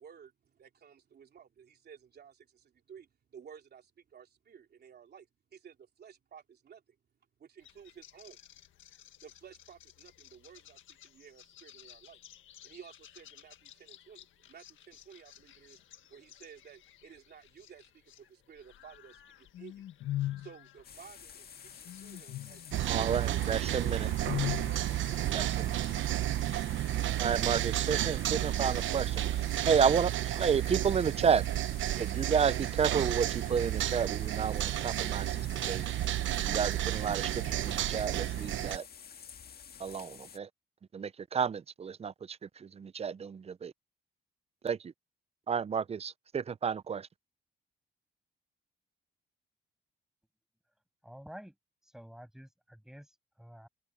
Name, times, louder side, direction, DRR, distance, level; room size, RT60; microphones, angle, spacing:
voice 1, 0.0-7.0 7.4-8.4 9.2-12.2 12.6-15.8 16.1-20.0 20.4-25.2, right 7 dB, 55° right, 3.1 m, -54 dB
sound 1, 7.6-18.3 18.5-25.2, left 14 dB, 80° left, 1.7 m, -44 dB
sound 2, 20.8-40.4, left 7 dB, 50° left, 1.8 m, -51 dB
sound 3, 22.7-38.8, right 13 dB, 75° right, 0.8 m, -32 dB
voice 2, 22.8-24.1 25.3-25.9 27.2-29.2 29.7-31.4 32.0-35.8 36.5-38.8 39.8-40.5 40.9-43.7 44.6-44.8 45.5-47.1, right 6 dB, 30° right, 0.6 m, -31 dB
voice 3, 51.0-51.6 51.8-53.7, equal, ahead, 7.8 m, -50 dB
cardioid pair, 90°, 20 cm